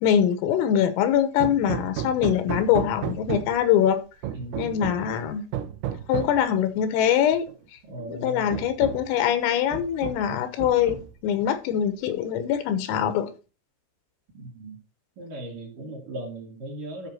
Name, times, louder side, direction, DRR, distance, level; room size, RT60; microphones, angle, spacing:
voice 1, 0.0-4.0 4.6-5.5 6.1-7.5 8.1-13.3, left 9 dB, 90° left, 3.7 m, -23 dB
Hammer, 1.4-3.7 4.2-5.1 5.5-6.4 7.5-7.6 8.0-8.1 8.5-9.2 9.7-10.3 10.6-11.3, right 10 dB, 80° right, 3.5 m, -33 dB
voice 2, 4.3-5.2 7.9-8.5 14.3-14.8 15.2-17.1, right 1 dB, 50° right, 3.2 m, -38 dB
13.0 x 5.6 x 4.4 m
omnidirectional pair, 6.0 m